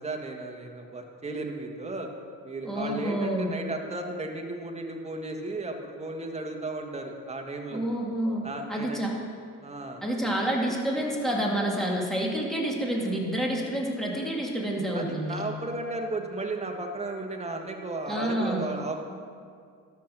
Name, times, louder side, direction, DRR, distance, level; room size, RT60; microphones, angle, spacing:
voice 1, 0.0-2.1 2.4-7.8 8.4-9.0 9.6-10.0 14.9-19.0, right 2 dB, 20° right, 2 dB, 1.6 m, -34 dB
voice 2, 2.7-3.5 7.7-8.4 8.7-9.2 10.0-15.4 18.1-18.7, right 1 dB, ahead, -3 dB, 2.5 m, -28 dB
13.0 x 6.1 x 6.7 m, 2.2 s
supercardioid pair, 90°, 35 cm